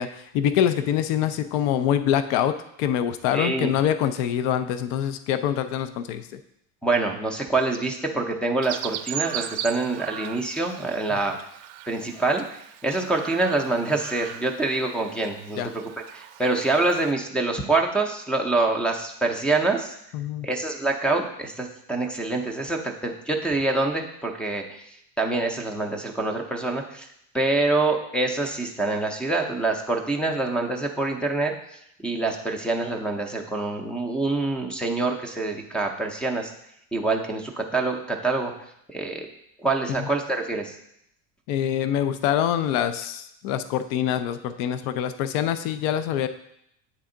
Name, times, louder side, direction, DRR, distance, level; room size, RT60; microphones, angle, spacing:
voice 1, 0.0-6.4 15.6-15.7 20.1-20.5 41.5-46.3, left 10 dB, 65° left, 11 dB, 0.5 m, -25 dB
voice 2, 3.3-3.7 6.8-11.4 11.9-12.4 12.8-15.8 16.1-20.0 20.4-27.1 27.3-36.5 36.9-38.5 38.9-39.3 39.6-40.8, right 2 dB, 5° left, 4 dB, 0.4 m, -26 dB
Chirp tweet, 8.6-17.1, right 13 dB, 65° right, 0.5 m, -38 dB
8.6 x 3.4 x 3.7 m, 0.76 s
supercardioid pair, 130°, 41 cm